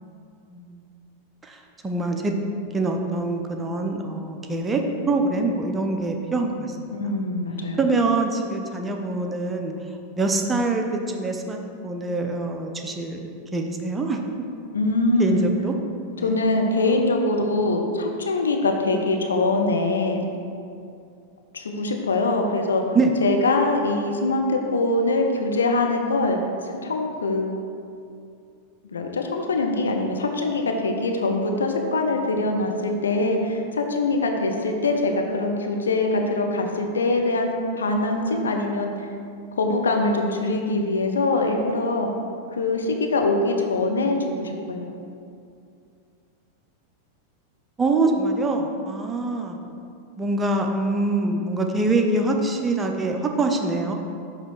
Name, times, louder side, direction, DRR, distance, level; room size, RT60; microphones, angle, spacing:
voice 1, 0.5-0.8 1.4-2.3 2.7-6.8 7.8-9.7 10.2-11.6 11.8-13.2 13.5-14.2 15.2-15.7 16.2-16.4 22.9-23.1 47.8-49.6 50.2-53.9, right 2 dB, 15° right, 3 dB, 0.5 m, -24 dB
voice 2, 6.9-7.8 14.7-15.5 16.2-20.2 21.5-22.8 23.2-26.4 26.6-27.5 28.9-39.1 39.5-42.1 42.5-44.9, left 2 dB, 70° left, 2 dB, 0.6 m, -23 dB
7.5 x 3.1 x 4.7 m, 2.5 s
figure-of-eight pair, 90°, 0 cm